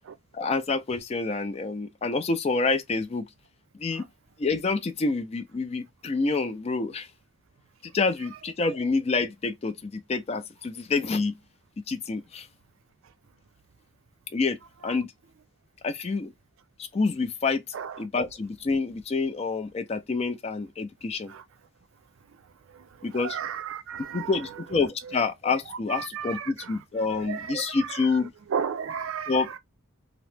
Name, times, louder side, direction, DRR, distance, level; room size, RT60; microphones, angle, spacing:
voice 1, 0.3-3.3 3.8-4.0 4.4-7.1 7.9-11.4 11.9-12.5 14.3-14.6 14.8-15.1 15.8-16.3 16.8-17.6 18.0-21.3 23.0-23.4 24.1-28.3 29.3-29.6, left 4 dB, 30° left, 0.3 m, -27 dB
voice 2, 17.7-18.1 21.3-21.4 23.0-24.5 25.0-25.2 25.7-26.8 27.1-28.2 28.5-29.6, right 7 dB, 70° right, 0.4 m, -34 dB
2.9 x 2.0 x 3.2 m
head